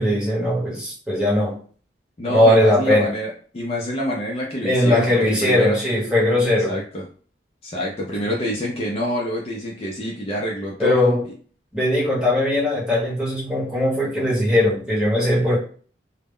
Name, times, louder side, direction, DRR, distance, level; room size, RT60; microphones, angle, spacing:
voice 1, 0.0-1.6 2.3-3.1 4.6-6.8 8.2-8.3 10.8-11.2 11.7-15.6, left 1 dB, 5° right, -6 dB, 0.9 m, -19 dB
voice 2, 2.2-5.8 6.7-7.0 7.6-11.2, equal, 35° left, -3 dB, 0.4 m, -27 dB
2.1 x 2.0 x 3.6 m, 0.44 s
head